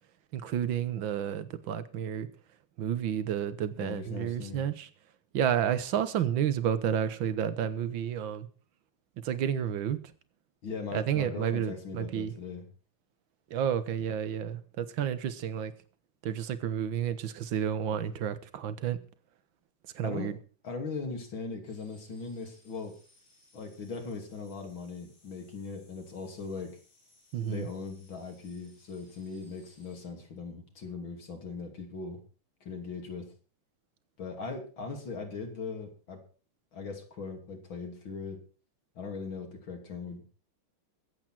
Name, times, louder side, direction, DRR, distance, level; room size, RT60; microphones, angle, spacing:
voice 1, 0.3-2.3 2.8-4.9 5.3-8.5 9.2-10.0 10.9-12.3 13.5-15.7 16.2-19.0 19.9-20.4 27.3-27.7, right 9 dB, 65° right, 1.9 m, -31 dB
voice 2, 3.8-4.6 10.6-12.6 20.0-20.4 20.6-23.0 23.5-26.8 27.5-32.2 32.6-33.3 34.2-36.2 36.7-38.4 39.0-40.3, left 4 dB, 65° left, 3.6 m, -39 dB
sound 1, 21.7-30.0, left 2 dB, 80° left, 8.2 m, -64 dB
23.0 x 8.4 x 4.5 m
omnidirectional pair, 2.3 m